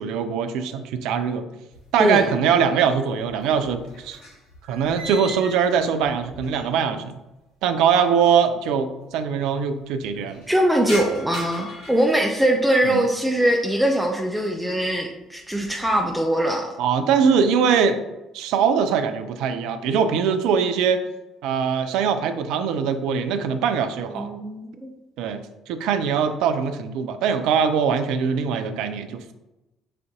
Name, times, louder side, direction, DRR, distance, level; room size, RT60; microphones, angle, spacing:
voice 1, 0.0-1.4 1.9-4.2 4.7-7.1 7.6-10.4 12.9-13.0 16.8-18.0 18.3-21.0 21.4-24.3 25.2-25.4 25.7-29.3, right 6 dB, 60° right, 9 dB, 0.3 m, -22 dB
sound 1, 1.7-2.6 2.9-7.0 7.2-7.3 8.2-8.3 8.5-8.6 8.9-9.4 9.8-13.0 13.4-13.9 14.4-14.7 15.2-16.1, left 1 dB, 70° left, 1.4 m, -40 dB
voice 2, 10.5-16.7 24.1-24.9, right 1 dB, 5° right, 1 dB, 0.5 m, -22 dB
6.6 x 2.6 x 2.4 m, 0.98 s
figure-of-eight pair, 50°, 0 cm